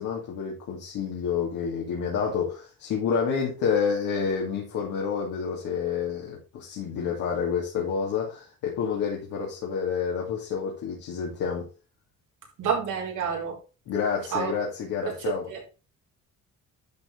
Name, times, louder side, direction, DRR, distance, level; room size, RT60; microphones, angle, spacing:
voice 1, 0.0-11.7 13.9-15.5, left 6 dB, 90° left, -3 dB, 2.5 m, -29 dB
voice 2, 12.6-13.6 14.3-14.5 15.0-15.6, right 6 dB, 80° right, -2 dB, 4.4 m, -29 dB
11.0 x 5.0 x 3.9 m, 0.32 s
cardioid pair, 90°, 30 cm